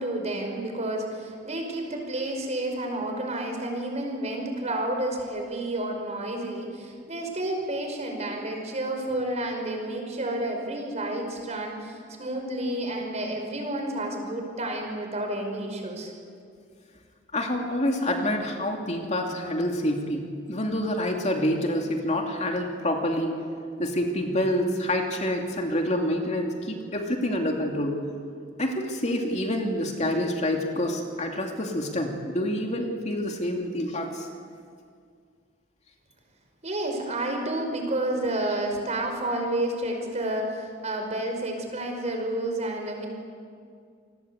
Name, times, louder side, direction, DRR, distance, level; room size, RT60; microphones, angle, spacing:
voice 1, 0.0-16.1 36.6-43.1, right 1 dB, 35° right, 3 dB, 5.2 m, -30 dB
voice 2, 17.3-23.3 23.8-28.0 28.6-34.3, left 1 dB, 35° left, 2 dB, 2.7 m, -27 dB
28.0 x 20.0 x 8.2 m, 2.2 s
head